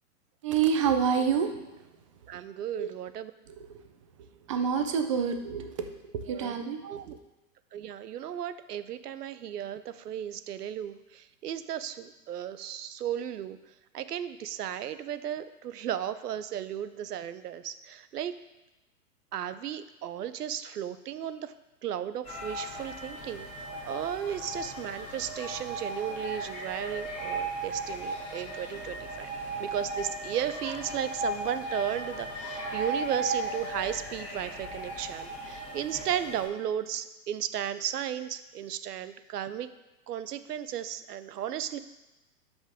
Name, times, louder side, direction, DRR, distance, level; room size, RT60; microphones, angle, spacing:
voice 1, 0.4-1.5 2.3-2.4 2.7-2.9 3.5-3.8 4.5-5.9 6.3-7.2, right 7 dB, 25° right, 6 dB, 0.4 m, -28 dB
voice 2, 2.3-3.3 6.3-6.5 6.8-7.1 7.7-13.6 13.9-18.3 19.3-21.5 21.8-29.3 29.6-39.7 40.1-41.8, right 10 dB, 90° right, 13 dB, 0.7 m, -35 dB
sound 1, 22.2-36.5, right 2 dB, 15° left, 2.6 m, -36 dB
12.0 x 5.4 x 3.5 m, 1.0 s
hypercardioid pair, 140°, 46 cm